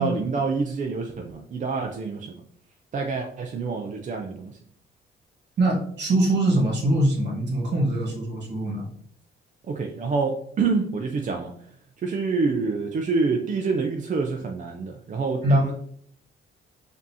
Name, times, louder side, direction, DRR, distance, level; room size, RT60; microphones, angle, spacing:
voice 1, 0.0-2.4 2.9-4.6 9.7-11.5 12.0-15.7, right 4 dB, 40° right, 3 dB, 0.5 m, -27 dB
voice 2, 5.6-8.9 15.4-15.7, right 1 dB, 60° right, -2 dB, 1.5 m, -22 dB
5.0 x 2.7 x 2.8 m, 0.64 s
cardioid pair, 90°, 20 cm